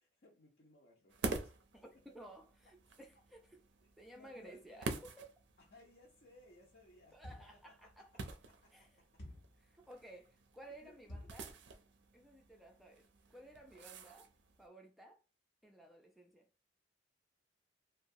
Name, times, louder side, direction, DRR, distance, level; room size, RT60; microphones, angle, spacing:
voice 1, 0.0-1.5 4.0-5.0 5.6-7.2 7.5-9.1 10.0-10.2 10.8-11.3, left 1 dB, 55° left, 0.7 m, -64 dB
sound 1, 1.1-14.7, right 3 dB, 65° right, 0.4 m, -48 dB
voice 2, 1.7-3.6 4.0-5.3 7.1-8.1 8.7-8.9 9.6-11.5 12.1-13.1 13.3-14.3 14.6-15.2 15.6-16.5, right 1 dB, ahead, 0.3 m, -56 dB
sound 2, 7.2-7.7 9.2-9.6 11.1-11.5, left 1 dB, 85° left, 1.0 m, -51 dB
2.7 x 2.3 x 2.6 m
head